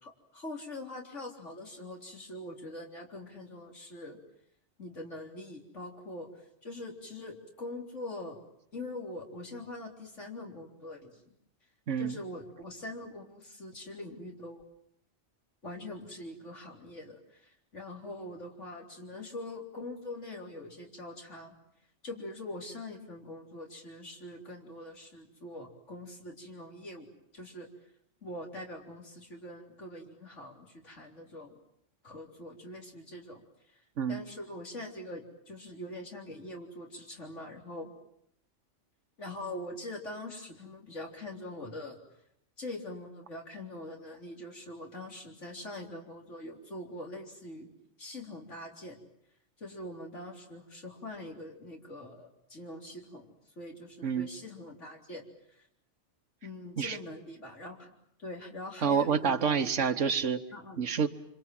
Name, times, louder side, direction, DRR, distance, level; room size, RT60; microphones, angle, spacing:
voice 1, 0.0-4.2 4.8-6.3 6.6-8.4 8.7-11.1 12.0-14.6 15.6-21.5 22.0-27.1 27.3-27.7 28.2-31.6 32.0-33.4 34.1-37.9 39.2-42.0 42.6-47.7 48.0-49.0 49.6-53.3 53.6-55.2 55.6-55.7 56.4-57.9 58.2-59.7 60.5-61.1, left 1 dB, 80° left, 1 dB, 4.2 m, -43 dB
voice 2, 11.9-12.2 34.0-34.2 54.0-54.3 56.8-57.0 58.8-60.4 60.8-61.1, right 6 dB, 85° right, 10 dB, 1.6 m, -28 dB
26.5 x 26.0 x 7.8 m, 0.74 s
omnidirectional pair, 1.2 m